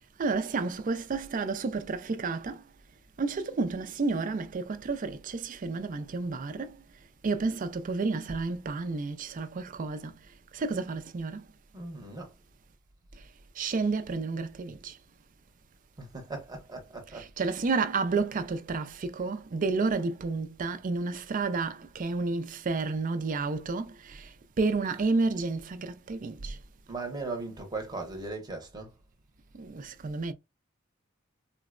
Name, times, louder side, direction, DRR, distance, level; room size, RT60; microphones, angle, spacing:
voice 1, 0.2-2.6 3.2-6.8 7.2-10.1 10.5-11.4 13.6-15.0 17.1-26.6 29.6-30.3, right 4 dB, 40° right, 0.4 m, -31 dB
voice 2, 11.7-12.3 16.0-17.5 26.9-28.9, right 3 dB, 20° right, 0.8 m, -38 dB
3.8 x 2.1 x 2.4 m
head